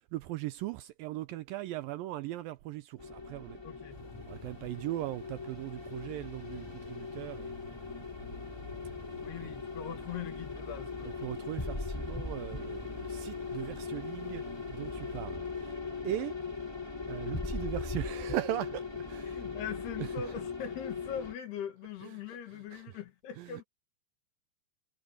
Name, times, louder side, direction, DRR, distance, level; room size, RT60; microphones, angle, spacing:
voice 1, 0.1-3.6 4.3-7.5 9.4-9.5 11.0-14.4 14.7-15.7 16.0-16.4 17.1-19.4 20.0-20.1 22.0-22.4 22.7-23.0 23.4-23.6, right 15 dB, 80° right, 2.1 m, -39 dB
sound 1, 3.0-21.3, left 4 dB, 10° left, 1.6 m, -39 dB
voice 2, 3.6-4.0 9.2-11.2 17.4-17.5 19.2-23.6, left 8 dB, 80° left, 4.2 m, -41 dB
Thunder, 3.9-15.2, left 2 dB, 45° left, 7.2 m, -54 dB
omnidirectional pair, 4.6 m